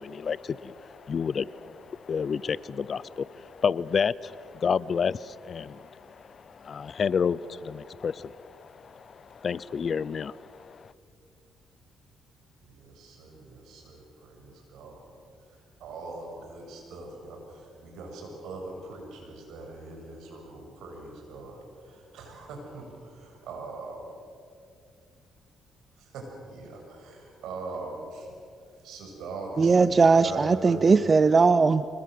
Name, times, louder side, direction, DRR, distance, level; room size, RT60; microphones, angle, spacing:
voice 1, 0.0-10.9, left 6 dB, 45° left, 20 dB, 0.6 m, -30 dB
voice 2, 12.6-15.1 15.4-24.0 26.0-28.3 28.7-31.0, right 3 dB, 80° right, 1 dB, 6.9 m, -41 dB
voice 3, 29.6-32.0, right 4 dB, 35° right, 14 dB, 0.6 m, -19 dB
25.5 x 21.0 x 7.7 m, 2.4 s
cardioid pair, 90°, 0 cm